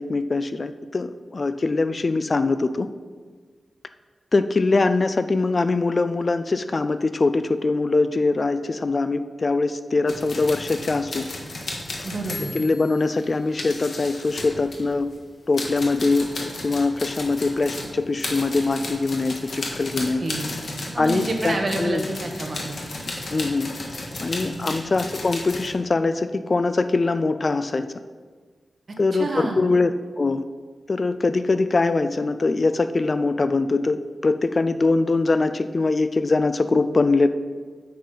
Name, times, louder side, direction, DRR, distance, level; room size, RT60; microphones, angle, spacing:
voice 1, 0.0-2.9 4.3-11.3 12.5-15.1 15.5-20.2 21.0-22.0 23.3-23.7 24.2-27.9 29.0-30.4 30.9-37.3, left 3 dB, 35° left, 11 dB, 0.4 m, -22 dB
sound 1, 10.1-15.2 15.5-25.7, left 2 dB, 60° left, 1.6 m, -34 dB
voice 2, 12.0-12.5 20.2-20.6 20.9-22.8 24.4-24.7 29.1-29.7, right 2 dB, 45° right, 2 dB, 1.5 m, -29 dB
8.6 x 7.7 x 5.5 m, 1.5 s
wide cardioid pair, 145°, 0 cm